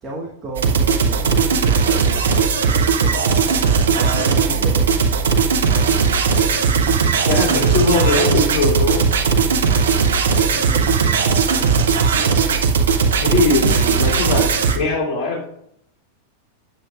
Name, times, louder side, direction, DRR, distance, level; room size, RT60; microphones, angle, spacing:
voice 1, 0.0-2.3 2.6-5.1 5.7-6.0 6.7-7.7 9.4-9.7 10.5-11.4, right 2 dB, 25° right, -2 dB, 1.3 m, -33 dB
sound 1, 0.6-14.8, right 5 dB, 65° right, 0.8 m, -17 dB
voice 2, 7.2-9.1 10.7-11.0 13.2-15.5, left 4 dB, 25° left, -3 dB, 2.7 m, -21 dB
8.0 x 7.8 x 2.4 m, 0.73 s
figure-of-eight pair, 90°, 0 cm